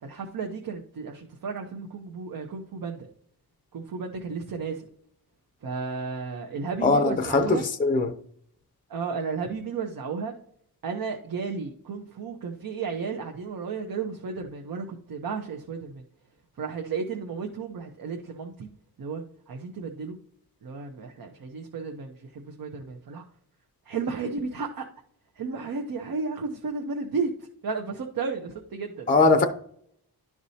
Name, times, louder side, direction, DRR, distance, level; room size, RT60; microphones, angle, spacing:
voice 1, 0.0-3.1 3.7-4.9 5.6-7.6 8.9-10.3 10.8-16.0 16.6-18.7 19.0-20.2 20.6-23.2 23.9-24.9 25.4-27.3 27.6-29.3, right 5 dB, 65° right, 0.9 m, -33 dB
voice 2, 6.8-8.1 29.1-29.5, left 3 dB, 25° left, 0.6 m, -21 dB
11.5 x 4.8 x 2.8 m
wide cardioid pair, 115°, 38 cm